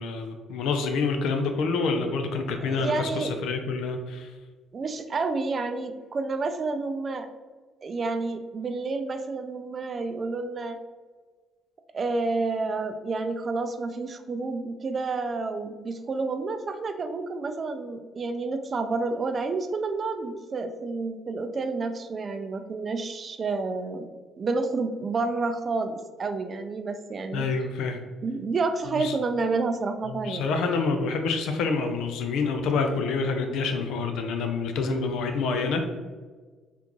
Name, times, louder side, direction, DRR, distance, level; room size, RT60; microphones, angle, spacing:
voice 1, 0.0-4.3 27.3-28.0 29.0-29.1 30.1-35.9, left 4 dB, 75° left, 5 dB, 0.4 m, -27 dB
voice 2, 2.6-3.3 4.7-7.3 7.8-10.8 11.9-24.1 24.4-27.4 28.2-30.5, right 3 dB, 45° right, 7 dB, 0.4 m, -29 dB
3.5 x 2.5 x 3.0 m, 1.4 s
hypercardioid pair, 60°, 0 cm